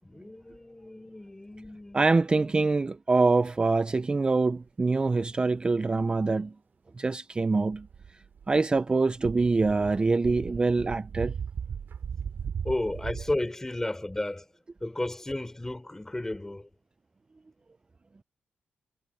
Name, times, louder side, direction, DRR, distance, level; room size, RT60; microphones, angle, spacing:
voice 1, 0.0-2.0 12.6-14.4 14.8-16.7, left 1 dB, 15° left, 5.8 m, -33 dB
voice 2, 1.9-6.5 7.0-7.9 8.5-11.3, right 3 dB, 25° right, 0.5 m, -25 dB
sound 1, 7.7-8.8 9.2-13.3, right 7 dB, 65° right, 5.5 m, -37 dB
cardioid pair, 100°, 4 cm